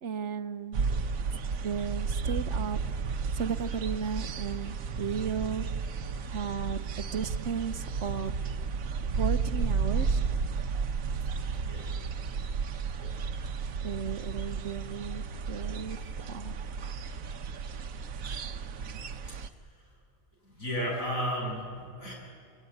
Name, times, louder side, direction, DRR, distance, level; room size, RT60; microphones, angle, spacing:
voice 1, 0.0-0.9 1.6-2.8 3.3-5.7 6.3-8.3 9.2-10.2 13.8-16.0 16.3-16.6, right 6 dB, 65° right, 12 dB, 1.3 m, -35 dB
sound 1, 0.7-19.5, right 5 dB, 80° right, 1.4 m, -33 dB
voice 2, 19.3-19.9 20.4-22.1, equal, 85° left, -2 dB, 8.3 m, -34 dB
28.5 x 22.5 x 9.3 m, 2.4 s
omnidirectional pair, 1.4 m